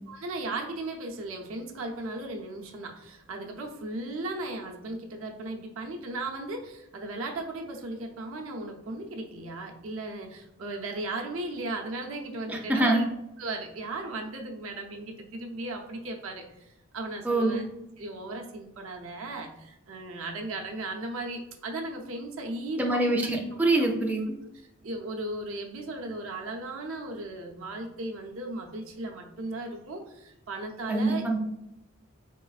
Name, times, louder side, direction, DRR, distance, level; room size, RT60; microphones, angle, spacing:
voice 1, 0.1-13.0 13.4-17.6 18.0-23.1 23.8-23.9 24.8-31.4, right 2 dB, 70° right, 2 dB, 0.6 m, -36 dB
voice 2, 12.5-13.0 17.2-17.6 22.8-24.4 30.9-31.4, right 2 dB, 10° right, 0 dB, 0.4 m, -25 dB
3.9 x 3.7 x 2.4 m, 0.86 s
head